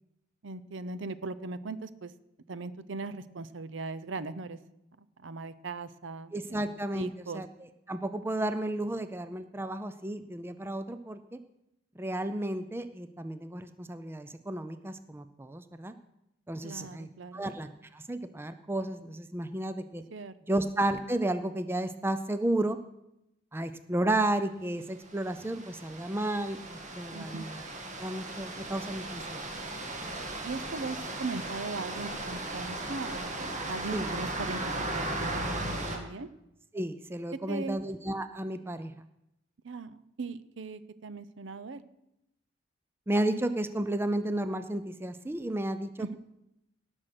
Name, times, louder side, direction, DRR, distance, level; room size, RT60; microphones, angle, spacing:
voice 1, 0.4-2.1 2.5-4.6 5.2-7.4 16.6-17.4 20.1-20.6 27.1-27.5 30.4-36.3 37.5-37.8 39.6-41.8 46.0-46.1, right 3 dB, 65° right, 15 dB, 0.6 m, -39 dB
voice 2, 6.3-7.1 7.3-7.5 7.9-11.4 12.0-16.0 16.5-20.0 20.5-22.8 23.5-27.6 28.0-29.5 33.9-34.1 36.7-38.9 43.1-46.1, right 1 dB, 10° right, 10 dB, 0.4 m, -32 dB
sound 1, 25.1-36.0, right 2 dB, 35° right, 1.8 m, -37 dB
17.5 x 6.3 x 5.9 m, 0.86 s
head